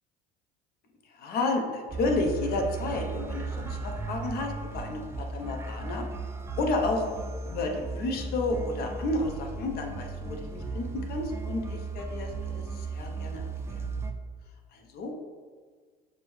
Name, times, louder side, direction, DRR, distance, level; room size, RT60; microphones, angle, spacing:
voice 1, 1.0-6.1 6.6-7.0 7.5-13.4 13.7-13.8 14.7-15.1, left 2 dB, 55° left, 2 dB, 0.8 m, -31 dB
sound 1, 1.9-14.1, right 4 dB, 15° right, 0.3 m, -36 dB
6.5 x 2.2 x 3.2 m, 1.5 s
supercardioid pair, 100°, 19 cm